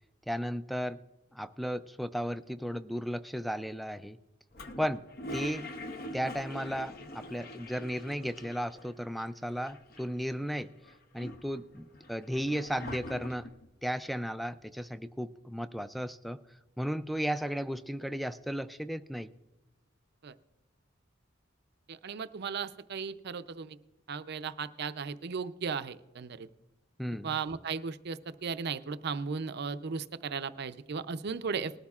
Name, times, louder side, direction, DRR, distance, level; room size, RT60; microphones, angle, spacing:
voice 1, 0.3-1.0 1.3-4.2 4.8-5.0 5.3-5.7 6.1-10.7 11.1-13.5 13.8-16.4 16.8-19.3 27.0-27.4, equal, ahead, 13 dB, 0.3 m, -35 dB
Toilet flush, 4.5-8.9 9.2-9.3 9.5-10.3 10.8-13.7, left 1 dB, 50° left, 0.8 m, -44 dB
voice 2, 21.9-23.8 24.1-26.5 27.2-31.7, right 5 dB, 55° right, 12 dB, 0.5 m, -36 dB
19.5 x 13.0 x 2.4 m, 1.0 s
head